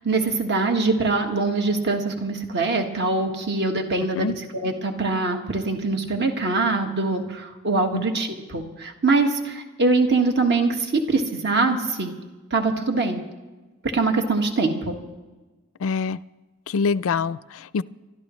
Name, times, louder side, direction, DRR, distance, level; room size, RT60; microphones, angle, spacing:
voice 1, 0.0-12.1 12.5-13.2 13.9-15.0, right 3 dB, 50° right, 4 dB, 1.6 m, -23 dB
voice 2, 15.8-16.2 16.7-17.8, left 5 dB, 70° left, 18 dB, 0.4 m, -25 dB
28.5 x 12.5 x 3.2 m, 1.2 s
head